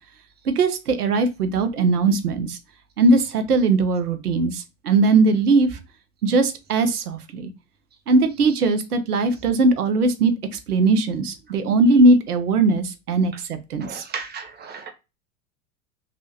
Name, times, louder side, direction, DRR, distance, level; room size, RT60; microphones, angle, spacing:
voice 1, 0.5-2.6 3.0-5.8 6.2-7.5 8.1-14.0, right 3 dB, 85° right, 0.7 m, -19 dB
voice 2, 13.8-14.9, right 6 dB, 20° right, 0.7 m, -35 dB
3.2 x 2.6 x 2.8 m
hypercardioid pair, 85°, 44 cm